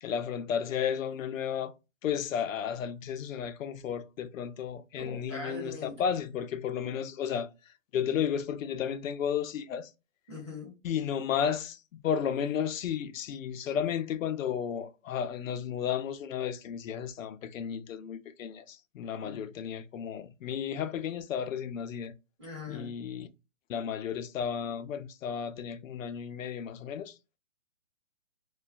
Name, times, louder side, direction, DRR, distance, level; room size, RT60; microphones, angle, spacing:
voice 1, 0.0-1.7 2.0-7.5 7.9-9.9 10.8-22.1 22.7-23.3 23.7-27.1, left 8 dB, 85° left, 0.5 m, -33 dB
voice 2, 5.0-6.0 10.3-10.8 19.2-19.4 22.4-22.9, left 2 dB, 20° right, 0.7 m, -41 dB
2.3 x 2.2 x 2.4 m
hypercardioid pair, 180°, 39 cm